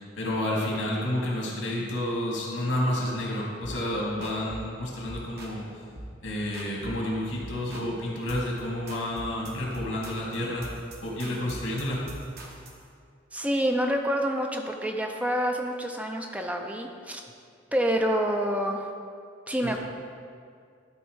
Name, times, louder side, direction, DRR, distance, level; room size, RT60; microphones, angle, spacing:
voice 1, 0.2-5.7 6.2-10.7 11.0-12.0 19.6-19.8, left 1 dB, 80° left, -3 dB, 2.3 m, -30 dB
sound 1, 3.6-3.9 4.2-4.7 5.1-5.6 6.0-6.2 6.5-7.1 7.4-7.9 8.3-8.6 8.9-12.8, right 1 dB, 55° right, 1.1 m, -42 dB
voice 2, 13.3-17.2 17.7-18.9 19.5-19.8, equal, 5° right, 3 dB, 0.5 m, -27 dB
12.5 x 4.1 x 4.7 m, 2.2 s
head